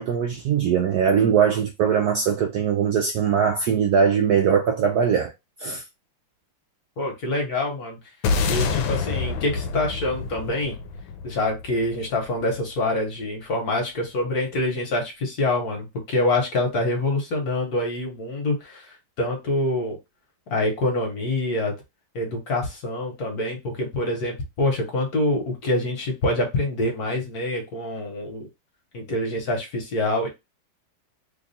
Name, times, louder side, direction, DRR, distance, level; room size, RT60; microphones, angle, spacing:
voice 1, 0.0-5.3 5.6-5.8, right 7 dB, 75° right, 0.9 m, -21 dB
voice 2, 7.0-8.0 8.5-10.7 11.2-20.0 20.5-21.7 22.1-28.5 28.9-30.3, left 2 dB, 55° left, 1.5 m, -26 dB
sound 1, 8.2-12.7, left 4 dB, 85° left, 1.4 m, -27 dB
3.4 x 2.3 x 3.9 m
omnidirectional pair, 2.1 m